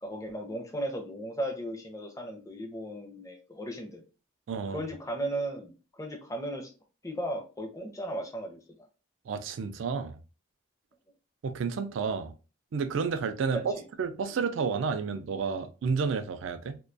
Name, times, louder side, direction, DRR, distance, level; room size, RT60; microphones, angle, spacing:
voice 1, 0.0-4.0 4.7-5.7 6.0-6.7 7.0-8.6 13.5-13.6, right 1 dB, 15° left, 0.4 m, -35 dB
voice 2, 4.5-4.8 9.3-10.2 11.4-12.3 12.7-13.6 14.0-16.8, right 5 dB, 80° right, 0.3 m, -31 dB
2.2 x 2.2 x 2.5 m
head